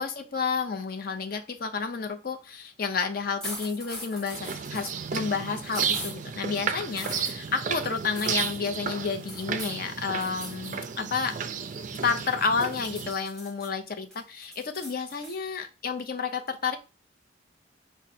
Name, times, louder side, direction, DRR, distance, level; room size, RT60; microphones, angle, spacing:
voice 1, 0.0-11.4 12.0-16.8, left 5 dB, 50° left, 7 dB, 0.6 m, -30 dB
sound 1, 3.4-5.0 5.7-6.2 7.0-7.3 8.2-8.7 9.3-9.8 10.2-10.8 11.1-12.2 12.6-13.7 14.1-15.4, left 1 dB, 5° left, 1.3 m, -40 dB
sound 2, 4.3-13.1, right 7 dB, 40° right, 0.4 m, -33 dB
4.9 x 2.1 x 4.2 m, 0.30 s
head